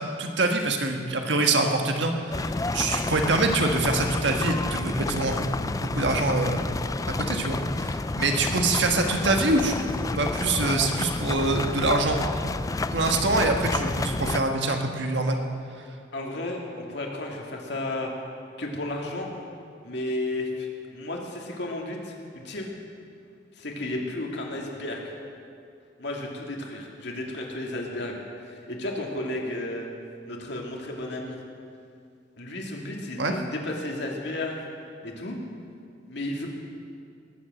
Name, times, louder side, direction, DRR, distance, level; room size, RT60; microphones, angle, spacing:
voice 1, 0.2-5.4 5.8-6.6 7.1-9.7 10.1-12.2 12.9-15.4 33.2-33.3, right 2 dB, 70° right, 3 dB, 1.6 m, -25 dB
sound 1, 2.3-14.4, left 2 dB, 20° left, 0.4 m, -30 dB
voice 2, 16.1-18.1 18.6-19.3 19.8-22.7 23.5-25.0 26.0-29.9 30.3-31.4 32.4-34.6 35.0-35.4 36.1-36.5, left 2 dB, 65° left, 0 dB, 2.5 m, -33 dB
19.5 x 8.2 x 7.8 m, 2.3 s
head